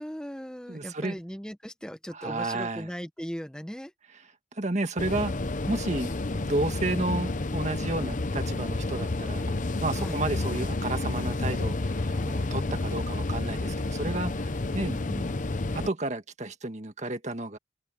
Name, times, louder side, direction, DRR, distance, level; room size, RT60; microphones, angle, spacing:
voice 1, 0.0-3.9 10.0-10.2 15.0-15.3, equal, 5° left, 1.2 m, -38 dB
voice 2, 0.7-1.2 2.1-2.9 4.5-5.4 5.7-15.0 15.7-17.6, right 2 dB, 40° right, 1.7 m, -32 dB
sound 1, 5.0-15.9, left 2 dB, 45° left, 0.8 m, -30 dB
head